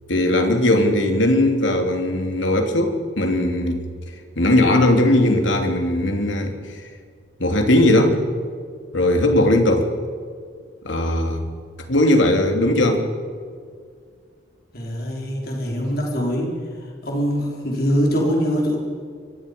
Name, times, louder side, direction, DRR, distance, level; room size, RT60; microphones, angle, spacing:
voice 1, 0.1-3.8 4.4-6.8 7.4-8.2 8.9-9.9 10.8-11.4 11.9-13.0, left 1 dB, 85° left, 4 dB, 3.3 m, -18 dB
voice 2, 14.7-16.5 17.0-18.8, equal, 50° left, -1 dB, 4.7 m, -23 dB
28.5 x 24.5 x 5.5 m, 2.1 s
head